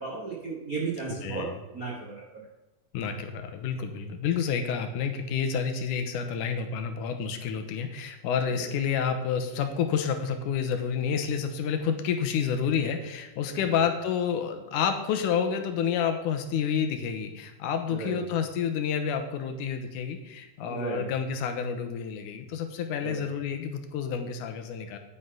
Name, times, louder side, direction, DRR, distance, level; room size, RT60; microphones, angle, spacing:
voice 1, 0.0-2.4 13.7-13.8 17.9-18.2 20.7-21.1 23.0-23.3, right 4 dB, 45° right, -3 dB, 1.1 m, -34 dB
voice 2, 1.2-1.6 2.9-25.0, left 7 dB, 85° left, 7 dB, 2.5 m, -29 dB
9.7 x 9.4 x 3.9 m, 1.1 s
omnidirectional pair, 3.6 m